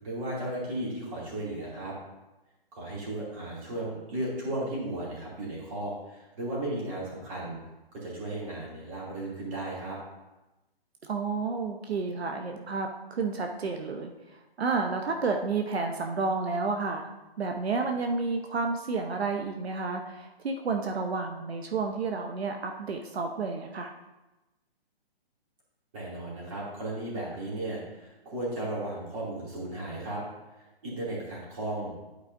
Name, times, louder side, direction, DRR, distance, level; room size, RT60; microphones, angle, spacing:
voice 1, 0.0-1.9 2.7-7.6 7.9-10.0 25.9-30.2 30.6-31.9, right 1 dB, 35° right, -5 dB, 2.6 m, -35 dB
voice 2, 11.0-17.1 17.4-23.9, right 4 dB, 85° right, 4 dB, 0.8 m, -31 dB
11.0 x 4.7 x 2.6 m, 1.0 s
hypercardioid pair, 160°, 31 cm